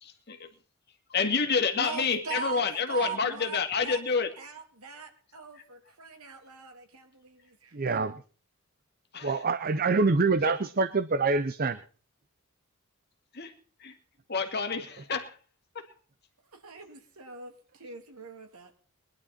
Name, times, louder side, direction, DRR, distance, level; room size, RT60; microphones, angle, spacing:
voice 1, 0.0-0.4 1.1-4.3 9.1-9.4 10.4-10.5 13.3-13.5 13.8-14.0 14.3-15.4 15.7-15.9, left 5 dB, 50° left, 2.1 m, -29 dB
voice 2, 1.8-2.6 2.9-4.0 4.4-8.0 16.5-18.7, right 5 dB, 90° right, 2.9 m, -41 dB
voice 3, 7.7-8.2 9.2-11.8, right 4 dB, 40° right, 0.7 m, -25 dB
21.5 x 11.5 x 4.3 m
head